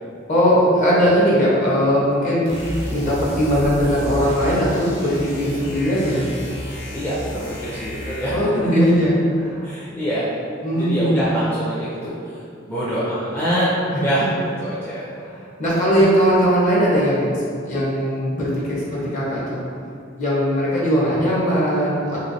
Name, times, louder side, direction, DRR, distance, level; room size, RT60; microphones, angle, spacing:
voice 1, 0.3-6.3 8.3-9.7 10.6-11.3 13.9-14.3 15.2-19.6 20.2-22.2, equal, 45° left, -7 dB, 0.9 m, -19 dB
sound 1, 2.5-8.6, equal, 70° left, 0.8 m, -31 dB
voice 2, 6.9-8.7 9.6-10.3 10.7-12.4 12.7-13.7 14.0-14.3 14.6-15.1, equal, 10° left, -10 dB, 0.5 m, -25 dB
3.3 x 3.0 x 2.7 m, 2.3 s
head